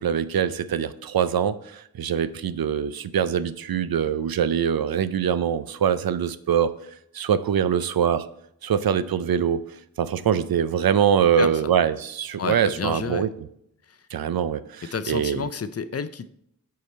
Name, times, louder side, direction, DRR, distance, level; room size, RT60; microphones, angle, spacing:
voice 1, 0.0-6.7 7.1-8.3 8.6-9.6 10.0-13.3 14.1-15.4, right 8 dB, 80° right, 14 dB, 0.5 m, -23 dB
voice 2, 11.4-11.7 12.4-13.3 13.8-14.1 14.9-16.3, left 6 dB, 45° left, 13 dB, 0.5 m, -31 dB
8.5 x 4.8 x 4.2 m, 0.74 s
wide cardioid pair, 110°, 35 cm